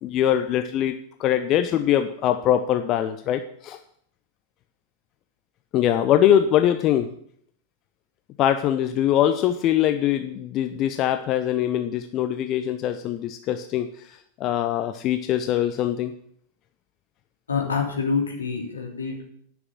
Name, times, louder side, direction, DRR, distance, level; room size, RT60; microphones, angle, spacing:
voice 1, 0.0-0.9 1.2-3.8 5.7-7.1 8.4-16.1, left 11 dB, 35° left, 8 dB, 0.7 m, -22 dB
voice 2, 17.5-19.2, left 5 dB, 75° left, 0 dB, 2.9 m, -26 dB
10.5 x 6.2 x 7.7 m, 0.64 s
figure-of-eight pair, 90°, 0 cm